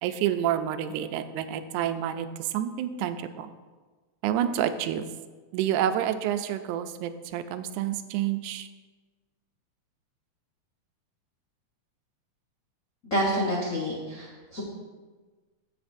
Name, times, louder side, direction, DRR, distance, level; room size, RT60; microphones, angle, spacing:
voice 1, 0.0-3.5 4.2-5.0 5.5-8.7, right 10 dB, 90° right, 10 dB, 2.0 m, -28 dB
voice 2, 13.1-14.6, equal, 60° left, -4 dB, 0.8 m, -28 dB
15.0 x 5.9 x 2.6 m, 1.3 s
omnidirectional pair, 3.4 m